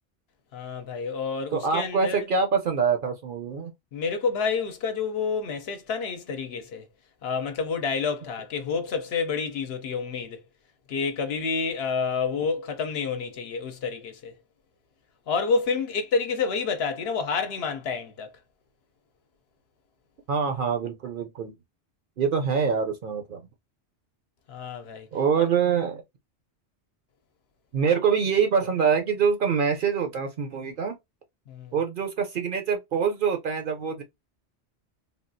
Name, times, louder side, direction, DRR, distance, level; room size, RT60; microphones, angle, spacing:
voice 1, 0.5-2.3 3.9-6.9 7.2-10.4 10.9-14.3 15.3-18.3 24.5-25.1 25.4-25.5 31.5-31.7, left 5 dB, 65° left, 0.8 m, -29 dB
voice 2, 1.5-3.7 20.3-21.5 22.2-23.4 25.1-26.0 27.7-30.9 31.7-34.0, right 6 dB, 55° right, 0.6 m, -25 dB
3.5 x 2.4 x 2.5 m
omnidirectional pair, 1.2 m